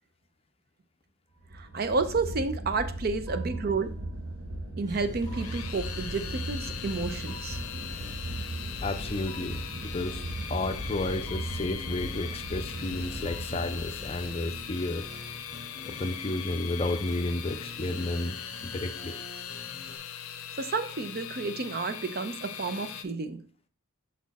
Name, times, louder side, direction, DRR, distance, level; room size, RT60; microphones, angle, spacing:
sound 1, 1.4-15.6, right 1 dB, 85° right, 1.2 m, -38 dB
voice 1, 1.5-3.9 4.8-7.6 20.6-23.4, right 4 dB, 45° right, 0.5 m, -31 dB
sound 2, 4.9-20.0, left 1 dB, 15° right, 2.0 m, -47 dB
sound 3, 5.2-23.0, left 9 dB, 80° left, 0.6 m, -40 dB
voice 2, 8.8-10.2 10.5-15.1 15.9-18.4 18.6-19.1, left 2 dB, 25° left, 0.5 m, -32 dB
6.1 x 4.2 x 4.1 m
head